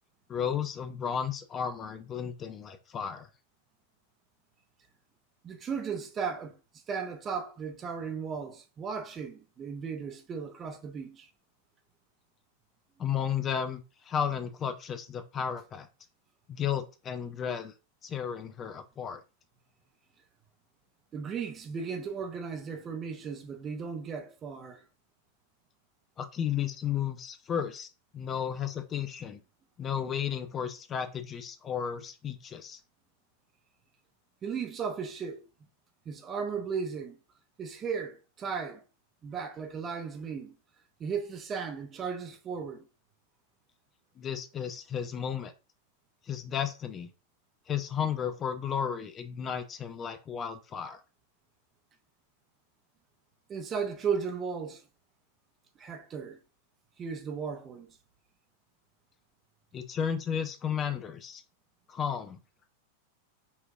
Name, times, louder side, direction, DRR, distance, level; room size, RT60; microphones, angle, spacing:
voice 1, 0.3-3.3 13.0-15.9 16.5-17.7 18.0-19.2 26.2-27.9 28.1-29.4 29.8-32.8 44.2-45.5 46.2-47.1 47.7-51.0 59.7-61.4 61.9-62.4, left 8 dB, 25° left, 0.5 m, -33 dB
voice 2, 5.4-6.5 6.9-11.3 21.1-24.8 34.4-35.4 36.1-37.2 37.6-38.8 39.2-40.5 41.0-42.9 53.5-54.8 55.8-56.4 57.0-58.0, right 6 dB, 25° right, 0.7 m, -35 dB
5.5 x 2.9 x 2.6 m
figure-of-eight pair, 90°, 0 cm